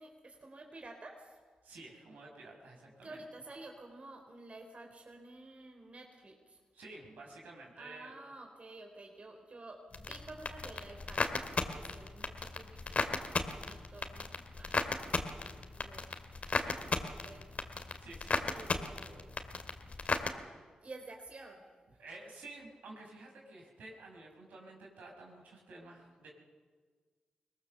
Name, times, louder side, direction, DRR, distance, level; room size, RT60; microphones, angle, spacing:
voice 1, 0.0-1.4 3.0-6.6 7.8-18.0 18.5-19.4 20.8-21.7, right 2 dB, 45° right, 2 dB, 3.7 m, -52 dB
voice 2, 1.6-3.2 6.7-8.1 16.5-16.9 18.0-19.0 22.0-26.3, right 2 dB, 80° right, -1 dB, 5.4 m, -51 dB
sound 1, 9.9-20.3, left 4 dB, 55° left, 2.3 m, -36 dB
23.0 x 19.0 x 6.9 m, 1.5 s
supercardioid pair, 40°, 3 cm